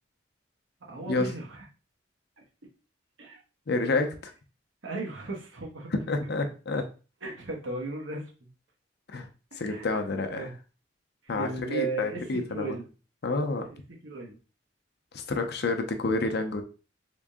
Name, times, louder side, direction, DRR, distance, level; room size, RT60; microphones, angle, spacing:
voice 1, 0.8-1.6 3.2-3.4 4.8-5.9 7.2-8.3 9.5-9.9 10.3-10.6 11.2-12.2 12.5-12.9 14.0-14.4, right 3 dB, 90° right, 0 dB, 1.1 m, -35 dB
voice 2, 3.7-4.3 5.9-6.9 9.1-9.3 9.6-10.5 11.3-12.8 13.2-13.7 15.1-16.6, left 3 dB, 60° left, 6 dB, 0.6 m, -29 dB
3.7 x 2.6 x 3.6 m, 0.34 s
head